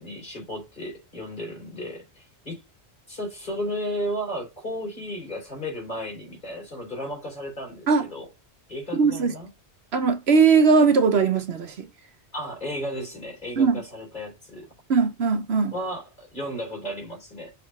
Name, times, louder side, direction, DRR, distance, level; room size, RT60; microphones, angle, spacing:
voice 1, 0.0-2.6 3.1-8.3 8.7-9.5 12.3-14.7 15.7-17.5, equal, 45° left, 3.9 m, -34 dB
voice 2, 8.9-9.3 9.9-11.9 13.6-13.8 14.9-15.7, right 5 dB, 70° right, 1.2 m, -20 dB
6.7 x 3.4 x 4.1 m
omnidirectional pair, 1.1 m